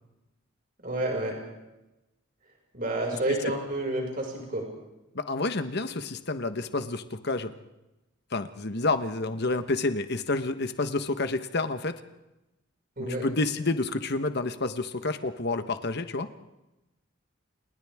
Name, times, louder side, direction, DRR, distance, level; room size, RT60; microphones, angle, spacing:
voice 1, 0.8-1.4 2.7-4.7 13.0-13.3, right 1 dB, 45° right, 0 dB, 5.7 m, -29 dB
voice 2, 5.1-7.5 8.3-12.0 13.2-16.3, left 3 dB, 55° left, 9 dB, 1.2 m, -29 dB
29.5 x 28.5 x 3.6 m, 0.98 s
head